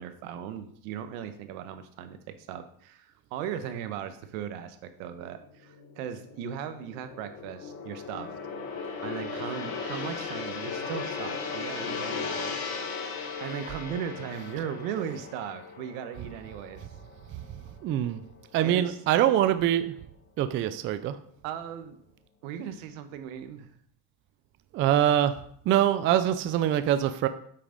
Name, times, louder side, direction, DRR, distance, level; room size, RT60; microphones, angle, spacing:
voice 1, 0.0-8.4 9.0-12.7 13.4-16.8 18.6-19.0 21.4-22.0 22.4-23.7, right 9 dB, 80° right, 9 dB, 1.3 m, -37 dB
Gong, 5.2-17.7 18.0-18.3, left 5 dB, 40° left, 1.5 m, -37 dB
voice 2, 17.8-18.2 18.5-19.9 20.4-21.2 24.7-25.3 25.7-27.3, right 11 dB, 30° right, 11 dB, 0.4 m, -24 dB
8.3 x 6.0 x 5.1 m, 0.64 s
cardioid pair, 155°, 40 cm